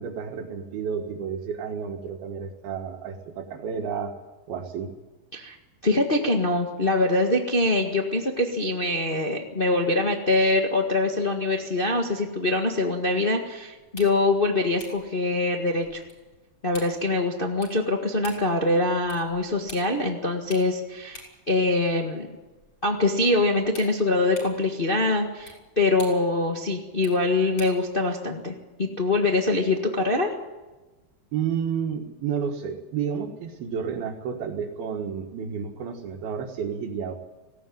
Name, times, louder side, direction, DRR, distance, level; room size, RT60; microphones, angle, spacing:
voice 1, 0.0-4.1 4.5-4.9 31.3-37.1, right 7 dB, 80° right, 0 dB, 3.6 m, -31 dB
voice 2, 5.8-16.0 16.6-22.3 22.8-30.3, left 2 dB, 90° left, 2 dB, 0.4 m, -24 dB
sound 1, 13.8-27.9, left 2 dB, 35° left, 7.2 m, -49 dB
19.0 x 17.5 x 9.4 m, 1.1 s
omnidirectional pair, 4.3 m